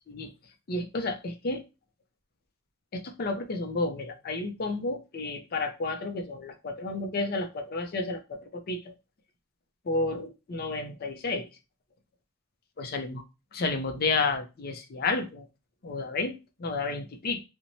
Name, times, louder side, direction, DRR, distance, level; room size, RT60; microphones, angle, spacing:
voice 1, 0.7-1.6 2.9-8.2 8.7-8.8 9.9-11.5 12.8-13.2 13.5-15.4 15.8-16.3 16.6-17.4, left 3 dB, 45° left, 6 dB, 0.5 m, -31 dB
3.0 x 2.1 x 2.6 m, 0.27 s
head